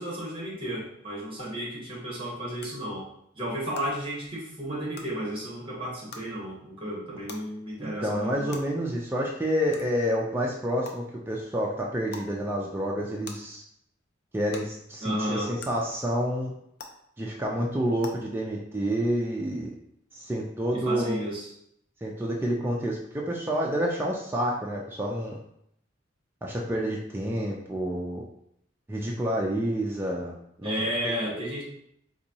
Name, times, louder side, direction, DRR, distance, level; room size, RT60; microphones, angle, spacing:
voice 1, 0.0-3.1 3.3-8.6 15.0-15.5 20.7-21.5 30.6-31.6, equal, 25° right, -4 dB, 1.2 m, -33 dB
sound 1, 1.4-1.5 2.6-2.7 3.7-3.8 4.9-5.0 6.1-6.2 7.3-7.4 8.5-8.6 9.7-9.8 10.8-10.9 12.1-12.3 13.2-13.3 14.5-14.6 15.6-15.7 16.8-16.9 18.0-18.1, left 5 dB, 55° left, 0.5 m, -40 dB
voice 2, 8.0-13.6 14.3-16.5 17.2-19.7 20.1-21.2 22.0-25.4 26.4-28.2 28.9-30.3 30.6-31.6, equal, 10° right, -3 dB, 0.4 m, -29 dB
4.1 x 2.6 x 2.7 m, 0.72 s
head